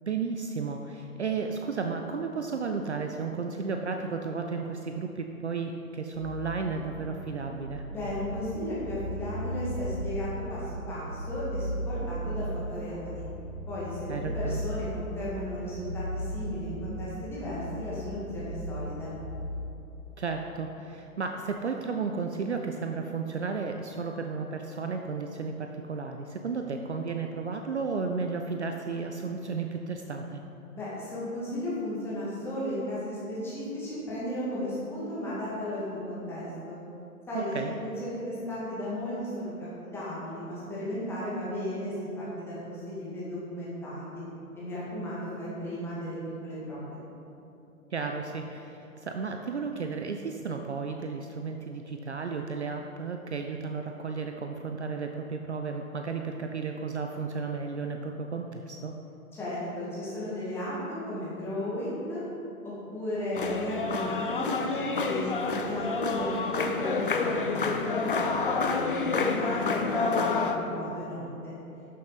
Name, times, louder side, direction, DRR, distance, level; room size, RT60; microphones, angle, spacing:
voice 1, 0.0-7.9 14.1-14.6 20.2-30.4 37.3-37.7 47.9-58.9, right 5 dB, 50° right, 4 dB, 0.6 m, -33 dB
sound 1, 6.1-19.6, right 1 dB, 10° right, 2.3 m, -37 dB
voice 2, 7.9-13.2 13.7-19.1 30.7-36.8 37.3-44.2 44.5-46.2 46.4-47.0 59.3-62.2 62.6-67.5 67.8-71.5, left 1 dB, 5° left, -9 dB, 1.8 m, -35 dB
sound 2, 63.4-70.6, left 4 dB, 40° left, 0.6 m, -28 dB
12.0 x 6.5 x 4.1 m, 2.9 s
figure-of-eight pair, 130°, 44 cm